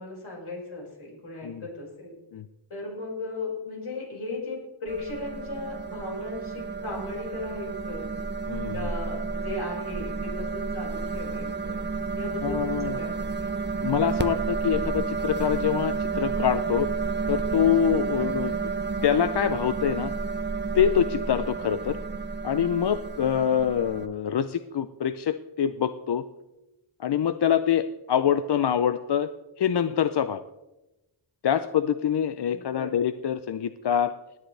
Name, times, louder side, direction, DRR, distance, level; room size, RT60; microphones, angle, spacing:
voice 1, 0.0-2.2 2.7-8.1 8.7-11.8 12.2-13.3 18.2-18.5 32.5-32.9, left 2 dB, 75° left, -3 dB, 5.4 m, -37 dB
sound 1, 4.9-24.1, right 4 dB, 20° right, 0.6 m, -31 dB
voice 2, 8.5-8.8 12.4-13.0 13.8-16.9 17.3-18.6 19.0-20.1 20.7-22.0 22.4-26.2 27.0-29.3 29.6-30.4 31.4-34.1, left 9 dB, 55° left, 12 dB, 0.6 m, -25 dB
17.5 x 10.5 x 3.3 m, 0.99 s
wide cardioid pair, 85°, 49 cm